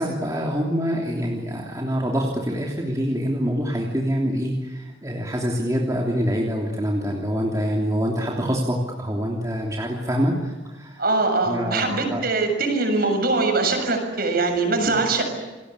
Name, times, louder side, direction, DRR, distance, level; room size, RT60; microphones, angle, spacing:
voice 1, 0.0-11.0 11.5-12.2, equal, 15° right, -1 dB, 3.2 m, -25 dB
voice 2, 11.0-15.2, right 3 dB, 50° right, 5 dB, 6.9 m, -22 dB
28.5 x 21.5 x 8.4 m, 1.2 s
head